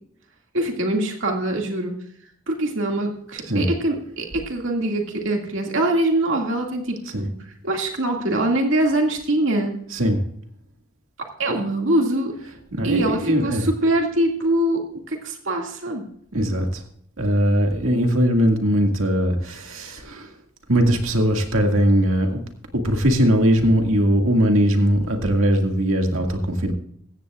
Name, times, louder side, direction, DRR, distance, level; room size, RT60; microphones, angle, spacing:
voice 1, 0.5-1.9 2.5-7.3 7.6-9.8 11.4-12.3 12.8-16.0, right 1 dB, 75° right, 1 dB, 2.2 m, -23 dB
voice 2, 12.7-13.7 16.3-16.8 17.2-20.3 20.7-22.4 22.7-26.7, equal, 90° right, 3 dB, 2.1 m, -20 dB
15.5 x 14.5 x 2.4 m, 0.64 s
head